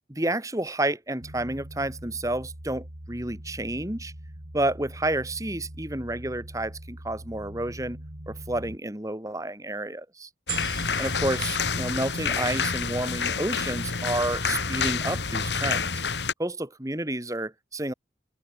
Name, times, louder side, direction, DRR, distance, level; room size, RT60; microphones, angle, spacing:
voice 1, 0.1-4.1 4.5-8.0 8.3-10.3 11.0-15.9 16.4-17.9, right 1 dB, 20° right, 1.9 m, -30 dB
sound 1, 1.2-8.8, right 1 dB, 65° right, 3.1 m, -42 dB
sound 2, 10.5-16.3, left 5 dB, 80° left, 2.6 m, -28 dB
sound 3, 10.5-12.9 13.5-13.6, right 11 dB, 50° right, 7.6 m, -41 dB
open air
head